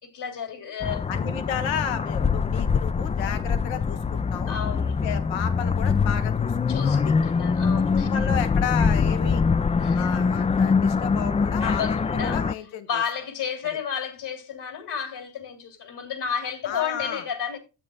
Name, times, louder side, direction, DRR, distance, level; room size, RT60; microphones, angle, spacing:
voice 1, 0.0-1.1 4.5-5.0 6.7-8.1 9.8-10.0 11.6-12.4 12.9-17.6, left 7 dB, 65° left, 3.1 m, -32 dB
sound 1, 0.8-12.5, left 5 dB, 15° left, 0.3 m, -23 dB
voice 2, 1.1-4.6 5.0-7.1 7.8-9.4 9.9-12.9 16.6-17.2, left 8 dB, 80° left, 1.4 m, -33 dB
12.5 x 8.4 x 2.3 m
hypercardioid pair, 45°, 45 cm